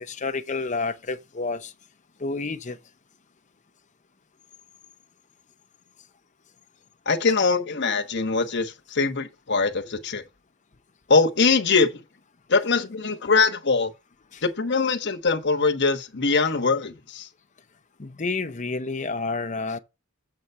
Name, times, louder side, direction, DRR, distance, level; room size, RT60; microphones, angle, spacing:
voice 1, 0.0-1.7 2.2-2.8 18.0-19.8, left 3 dB, 35° left, 0.7 m, -29 dB
voice 2, 7.1-10.2 11.1-12.0 12.5-13.9 14.4-17.3, left 4 dB, 55° left, 1.1 m, -22 dB
7.7 x 5.5 x 4.6 m
head